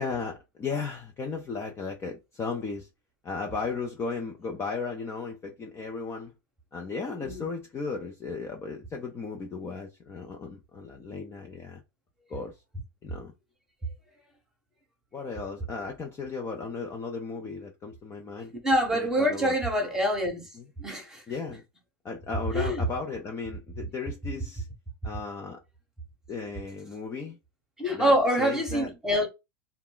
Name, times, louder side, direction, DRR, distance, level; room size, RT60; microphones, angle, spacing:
voice 1, 0.0-2.9 3.2-6.3 6.7-11.8 12.3-12.6 13.0-13.3 15.1-18.5 18.9-19.6 20.5-20.7 21.3-21.6 22.0-24.7 25.0-25.6 26.3-27.4 27.9-28.9, left 4 dB, 20° left, 0.5 m, -35 dB
voice 2, 18.6-20.5 20.8-21.2 22.5-22.9 27.8-29.3, equal, 5° right, 1.0 m, -25 dB
2.2 x 2.1 x 3.7 m
hypercardioid pair, 120°, 12 cm